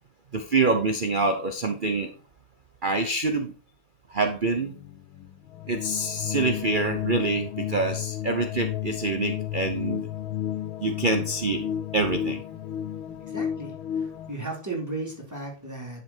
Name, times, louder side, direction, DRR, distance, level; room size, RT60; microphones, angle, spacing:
voice 1, 0.3-2.1 2.8-3.5 4.1-4.8 5.7-10.0 10.8-11.7 11.9-12.4, right 3 dB, 45° right, 7 dB, 0.6 m, -26 dB
sound 1, 4.5-14.3, left 10 dB, 80° left, 1.6 m, -32 dB
voice 2, 13.3-16.0, right 2 dB, 10° right, -2 dB, 3.8 m, -35 dB
11.0 x 5.7 x 4.5 m, 0.35 s
omnidirectional pair, 2.2 m